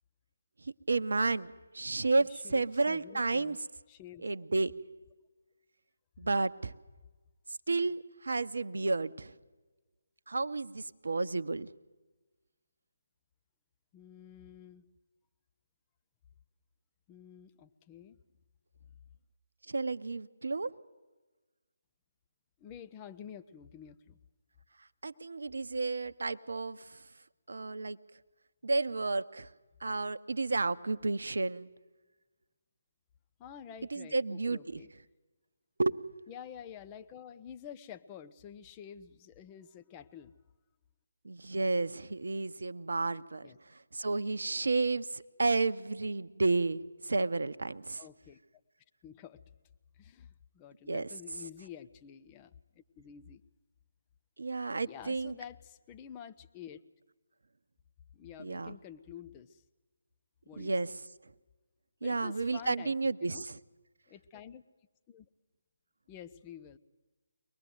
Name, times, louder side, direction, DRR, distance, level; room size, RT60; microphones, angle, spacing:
voice 1, 0.9-3.6 4.2-4.7 6.2-6.7 7.7-9.3 10.3-11.7 19.7-20.7 25.0-26.9 27.5-28.0 28.6-29.5 29.8-31.7 33.9-34.8 35.8-36.0 41.2-43.5 43.9-48.0 50.9-51.1 54.4-55.3 58.4-58.8 60.6-60.9 62.0-63.6, right 3 dB, 65° right, 11 dB, 0.9 m, -31 dB
voice 2, 2.2-3.6 3.9-4.3 13.9-14.9 17.1-18.2 22.6-24.2 33.4-34.9 36.3-40.4 43.4-43.6 48.0-48.4 49.0-49.4 50.0-53.4 54.8-56.8 58.1-59.6 60.4-60.7 62.0-63.4 64.1-64.6 65.1-65.3 66.1-66.8, left 9 dB, 20° left, 9 dB, 0.8 m, -49 dB
23.5 x 19.5 x 7.9 m, 1.2 s
figure-of-eight pair, 150°, 0 cm